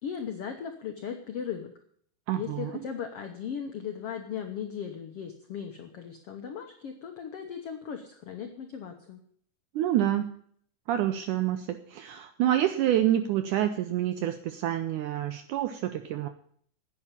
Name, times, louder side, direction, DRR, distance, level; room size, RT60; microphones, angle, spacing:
voice 1, 0.0-1.7 2.3-9.2, left 7 dB, 85° left, 5 dB, 1.3 m, -37 dB
voice 2, 2.3-2.7 9.8-10.3 10.9-16.3, right 12 dB, 80° right, 9 dB, 1.8 m, -27 dB
10.0 x 8.6 x 9.9 m, 0.64 s
omnidirectional pair, 4.3 m